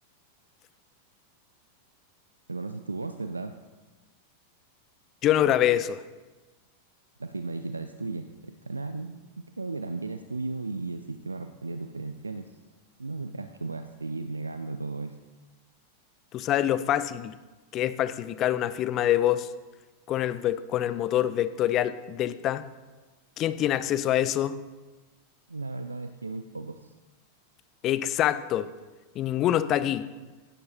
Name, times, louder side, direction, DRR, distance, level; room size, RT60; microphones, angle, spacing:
voice 1, 2.5-3.5 7.2-9.2 9.6-12.5 13.0-15.2 25.5-26.9, right 3 dB, 80° right, 8 dB, 0.5 m, -35 dB
voice 2, 5.2-6.0 16.3-17.3 17.7-19.5 20.1-22.6 23.4-24.6 27.8-28.7 29.2-30.0, left 12 dB, 35° left, 15 dB, 0.5 m, -25 dB
16.0 x 11.0 x 2.8 m, 1.2 s
figure-of-eight pair, 90°, 0 cm